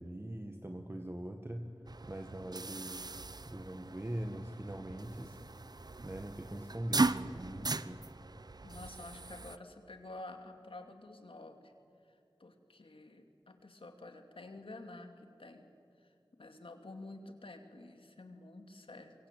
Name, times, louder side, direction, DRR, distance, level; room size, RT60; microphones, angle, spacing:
voice 1, 0.0-1.7 2.0-3.0 3.4-5.4 6.0-8.0, right 1 dB, 25° right, 4 dB, 1.7 m, -42 dB
sound 1, 1.9-9.6, right 3 dB, 50° right, 0.7 m, -38 dB
voice 2, 8.6-11.7 12.1-15.7 16.0-16.1 16.4-19.1, left 2 dB, 85° left, 5 dB, 2.6 m, -50 dB
24.0 x 23.5 x 9.2 m, 2.3 s
wide cardioid pair, 60°, 9 cm